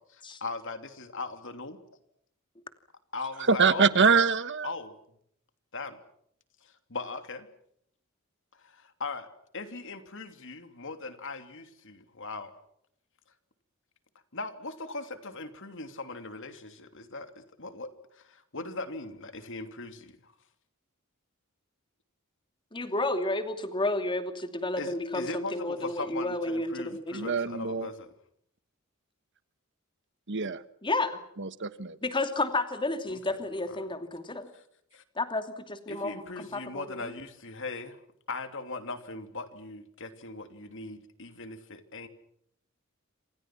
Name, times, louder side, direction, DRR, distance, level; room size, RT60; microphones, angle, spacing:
voice 1, 0.1-1.8 3.1-3.9 4.6-4.9 5.7-6.0 6.6-7.5 8.6-9.3 9.5-12.5 14.3-20.3 24.8-28.1 33.1-33.4 33.7-33.8 34.9-35.0 35.9-38.0 38.3-42.1, left 3 dB, 60° left, 3.0 m, -39 dB
voice 2, 3.5-4.7 27.1-27.9 30.3-30.6 31.4-31.9, right 5 dB, 55° right, 1.3 m, -24 dB
voice 3, 22.7-27.3 30.8-31.2 32.0-34.5 35.2-37.1, left 2 dB, 20° left, 2.7 m, -31 dB
28.0 x 27.5 x 6.1 m
head